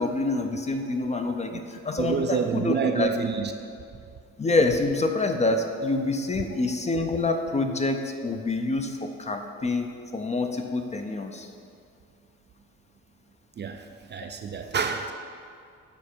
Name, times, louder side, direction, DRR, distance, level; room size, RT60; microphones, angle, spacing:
voice 1, 0.0-3.1 4.4-11.5, left 2 dB, 25° left, 5 dB, 0.5 m, -27 dB
voice 2, 2.0-3.5 13.6-15.1, right 6 dB, 35° right, 6 dB, 0.4 m, -28 dB
7.1 x 4.2 x 4.5 m, 2.3 s
cardioid pair, 90°, 30 cm